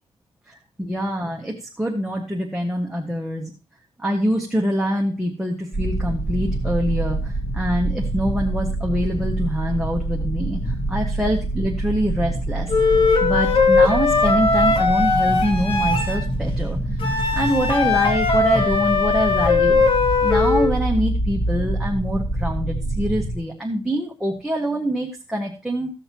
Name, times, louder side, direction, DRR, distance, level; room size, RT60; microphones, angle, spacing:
voice 1, 0.5-3.5 4.0-12.7 13.2-19.8 20.2-25.9, equal, 5° right, -1 dB, 1.5 m, -25 dB
sound 1, 5.7-23.4, right 1 dB, 25° left, 2.6 m, -26 dB
Wind instrument woodwind instrument, 12.7-16.2 17.0-20.7, left 4 dB, 55° left, 1.9 m, -19 dB
15.5 x 6.6 x 3.0 m, 0.33 s
wide cardioid pair, 115°, 11 cm